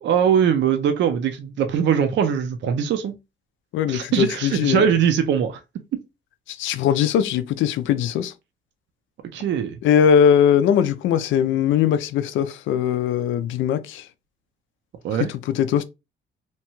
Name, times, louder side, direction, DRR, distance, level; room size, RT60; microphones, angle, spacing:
voice 1, 0.0-3.2 3.9-5.6 9.3-9.8 15.0-15.3, right 8 dB, 65° right, 0.5 m, -21 dB
voice 2, 3.7-4.8 6.5-8.3 9.8-14.1 15.1-15.8, left 8 dB, 80° left, 0.4 m, -20 dB
2.9 x 2.2 x 2.9 m
cardioid pair, 90°, 20 cm